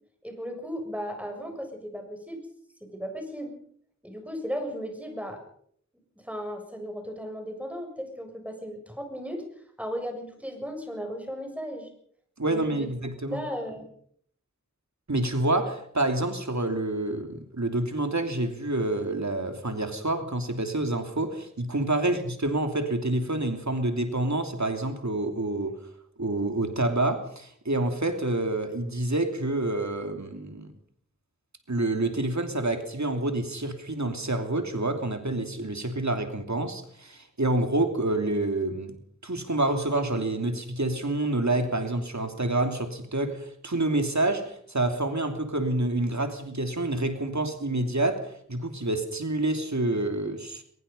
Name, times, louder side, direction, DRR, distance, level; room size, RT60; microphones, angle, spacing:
voice 1, 0.2-2.4 2.8-3.6 4.0-5.4 6.2-9.5 9.8-11.9 12.4-12.9 13.3-13.9 22.0-22.1, equal, 5° right, 4 dB, 7.2 m, -36 dB
voice 2, 12.4-13.4 15.1-25.8 26.2-30.7 31.7-39.0 39.2-50.6, right 2 dB, 70° right, 6 dB, 3.1 m, -28 dB
22.0 x 21.5 x 5.6 m, 0.63 s
wide cardioid pair, 45°, 30 cm